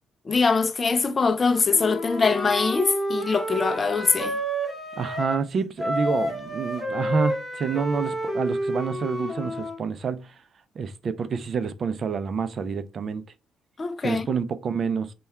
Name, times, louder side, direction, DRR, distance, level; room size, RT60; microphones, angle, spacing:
voice 1, 0.3-4.4 13.8-14.2, left 4 dB, 35° left, 0.4 m, -23 dB
Wind instrument woodwind instrument, 1.7-5.5 5.8-9.8, equal, ahead, 1.4 m, -29 dB
voice 2, 4.9-10.4 10.8-13.2 14.0-15.1, right 6 dB, 50° right, 0.4 m, -28 dB
3.3 x 2.2 x 4.3 m
cardioid pair, 90°, 0 cm